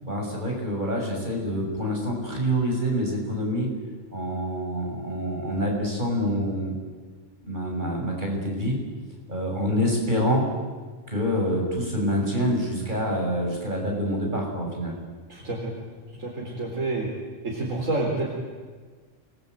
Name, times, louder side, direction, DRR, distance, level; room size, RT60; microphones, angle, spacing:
voice 1, 0.0-3.7 4.1-6.7 7.5-8.8 9.3-10.4 11.1-14.9, equal, 40° right, 0 dB, 6.8 m, -26 dB
voice 2, 15.3-15.7 16.2-17.1 17.4-18.3, right 2 dB, 85° right, -3 dB, 4.7 m, -28 dB
28.0 x 20.5 x 9.3 m, 1.4 s
omnidirectional pair, 1.3 m